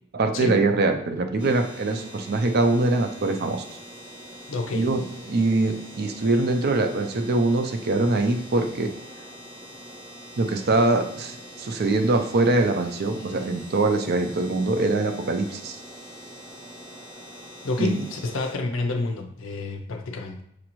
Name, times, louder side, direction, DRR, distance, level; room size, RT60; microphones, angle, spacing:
voice 1, 0.1-3.6 4.7-8.9 10.4-15.8 17.8-18.0, right 2 dB, 50° right, 6 dB, 0.5 m, -23 dB
sound 1, 1.4-18.5, equal, 10° right, 0.8 m, -43 dB
voice 2, 4.5-4.9 17.6-20.4, left 3 dB, 70° left, 5 dB, 0.5 m, -29 dB
6.2 x 2.5 x 3.0 m, 0.76 s
head